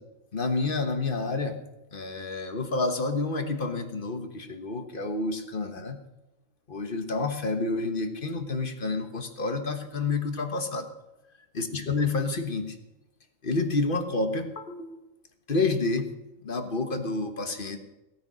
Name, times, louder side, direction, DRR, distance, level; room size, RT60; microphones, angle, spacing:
voice 1, 0.3-1.6 1.9-6.0 6.7-10.9 11.5-12.8 13.4-15.0 15.5-16.1 16.4-17.8, left 3 dB, 40° left, 7 dB, 1.4 m, -29 dB
17.0 x 9.1 x 6.2 m, 0.98 s
omnidirectional pair, 1.4 m